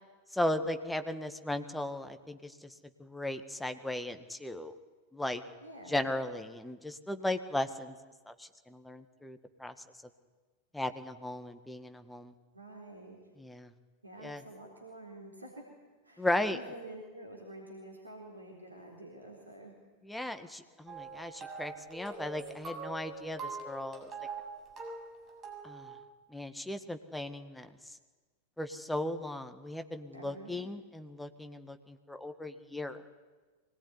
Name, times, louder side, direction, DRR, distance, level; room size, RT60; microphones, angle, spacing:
voice 1, 0.3-2.7 3.0-4.8 5.1-5.4 5.9-8.0 8.3-9.7 10.7-12.3 13.4-13.7 14.2-14.4 16.2-16.6 20.0-24.1 25.6-25.9 26.3-27.7 28.6-33.0, left 1 dB, 5° left, 8 dB, 1.8 m, -36 dB
voice 2, 5.6-6.1 12.5-13.2 14.0-15.5 16.0-19.8 30.1-30.7, right 1 dB, 80° right, -1 dB, 3.9 m, -48 dB
sound 1, 20.9-26.0, right 4 dB, 25° right, 7.0 m, -44 dB
24.0 x 20.0 x 9.7 m, 1.3 s
figure-of-eight pair, 90°, 0 cm